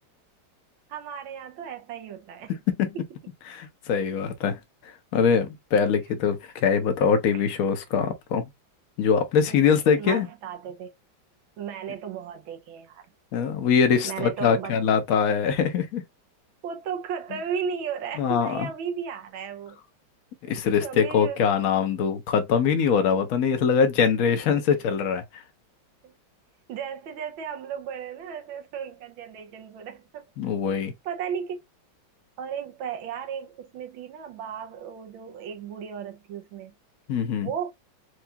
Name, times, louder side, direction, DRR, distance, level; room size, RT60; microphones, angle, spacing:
voice 1, 0.9-2.6 7.3-7.5 9.5-9.7 9.9-10.9 11.6-13.0 14.0-14.8 16.6-19.8 20.8-21.4 24.5-24.6 26.0-26.1 26.7-30.2 31.0-31.6 32.4-36.7 37.4-37.7, right 7 dB, 85° right, 1.6 m, -35 dB
voice 2, 3.5-8.5 9.0-10.3 13.3-16.0 18.2-18.7 20.5-25.4 30.4-30.9 37.1-37.5, left 6 dB, 60° left, 1.0 m, -23 dB
4.7 x 2.4 x 2.8 m
omnidirectional pair, 2.2 m